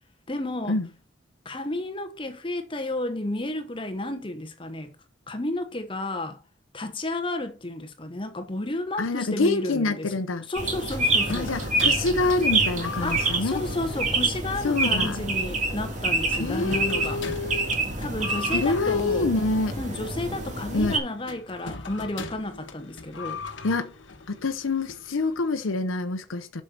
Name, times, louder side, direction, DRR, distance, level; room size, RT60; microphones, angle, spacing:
voice 1, 0.3-0.8 1.4-4.9 5.3-6.4 6.7-10.1 10.5-11.5 13.0-17.2 18.0-19.3 19.7-23.4, left 1 dB, 25° left, 1.0 m, -32 dB
voice 2, 9.0-10.5 11.3-13.6 14.6-15.2 16.4-17.7 18.5-19.7 20.7-21.0 23.6-23.9 24.3-26.6, left 3 dB, 90° left, 0.7 m, -26 dB
sound 1, 10.5-21.0, right 2 dB, 35° right, 2.0 m, -27 dB
sound 2, 10.9-25.6, left 4 dB, 70° left, 1.2 m, -41 dB
8.4 x 6.5 x 4.4 m
head